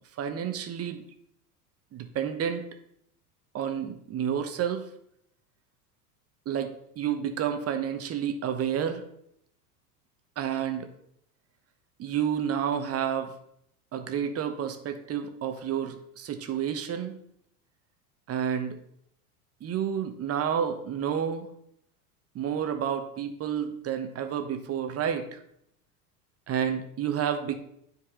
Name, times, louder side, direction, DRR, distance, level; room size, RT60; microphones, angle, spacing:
voice 1, 0.2-1.0 1.9-2.7 3.5-4.9 6.5-9.0 10.4-10.9 12.0-13.3 13.9-17.2 18.3-18.8 19.6-21.5 22.3-25.4 26.5-27.6, right 8 dB, 30° right, 7 dB, 1.0 m, -30 dB
9.9 x 4.6 x 3.7 m, 0.72 s
hypercardioid pair, 90°, 46 cm